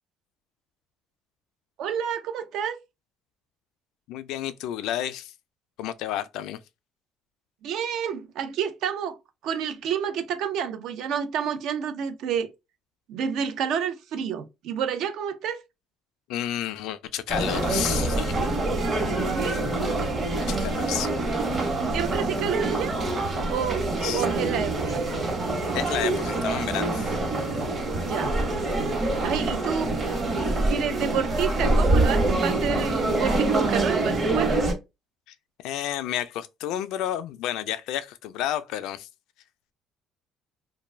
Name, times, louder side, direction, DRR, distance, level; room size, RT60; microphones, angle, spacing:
voice 1, 1.8-2.8 7.6-9.2 9.4-12.5 13.1-15.6 19.3-19.7 21.9-23.0 23.5-23.9 24.1-25.0 28.0-28.4 29.2-30.0 30.3-34.6, right 8 dB, 70° right, 0.5 m, -29 dB
voice 2, 4.1-5.3 5.8-6.6 16.3-18.3 20.4-21.2 24.0-24.2 25.7-27.1 35.3-35.4 35.6-39.1, left 11 dB, 80° left, 0.3 m, -31 dB
sound 1, 17.3-34.7, right 2 dB, 35° right, 1.0 m, -25 dB
2.5 x 2.2 x 3.1 m
cardioid pair, 135°, 0 cm